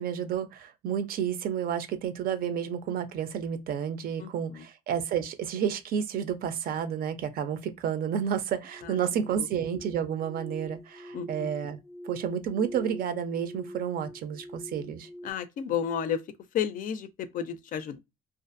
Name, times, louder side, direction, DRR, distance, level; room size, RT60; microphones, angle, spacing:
voice 1, 0.0-11.8 12.0-15.1, right 8 dB, 60° right, 0.5 m, -31 dB
voice 2, 4.2-4.6 8.8-8.9 11.1-11.5 15.2-16.2 16.5-18.0, left 8 dB, 55° left, 0.4 m, -32 dB
sound 1, 8.7-15.3, equal, ahead, 0.5 m, -44 dB
2.5 x 2.4 x 2.5 m
cardioid pair, 110°, 17 cm